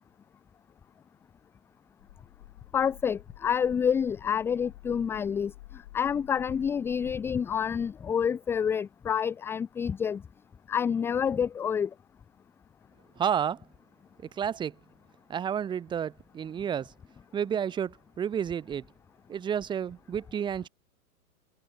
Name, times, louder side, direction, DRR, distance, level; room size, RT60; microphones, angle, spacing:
sound 1, 2.0-7.9, left 17 dB, 45° left, 6.5 m, -51 dB
voice 1, 2.7-10.2 10.7-11.9, left 7 dB, 5° left, 0.7 m, -28 dB
voice 2, 13.2-13.6 14.4-14.7 15.3-16.9 17.3-18.8 19.3-20.7, right 8 dB, 10° right, 1.4 m, -30 dB
hypercardioid pair, 160°, 44 cm